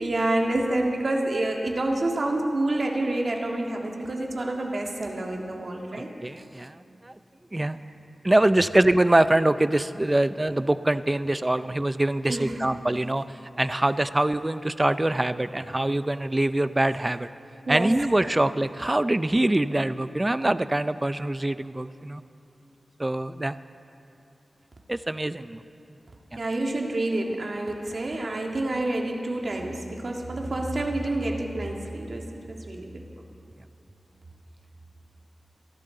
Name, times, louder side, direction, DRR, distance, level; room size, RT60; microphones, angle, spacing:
voice 1, 0.0-6.1 7.5-7.7 12.3-12.6 17.6-18.1 26.4-33.0, right 2 dB, 55° right, 1 dB, 1.7 m, -28 dB
voice 2, 5.9-6.8 7.0-7.1 7.5-7.8 8.2-13.2 13.6-17.3 17.7-22.2 23.0-23.6 24.9-25.6 26.3-26.4, right 1 dB, 20° right, 13 dB, 0.4 m, -24 dB
27.0 x 11.5 x 3.9 m, 2.7 s
wide cardioid pair, 80°, 0 cm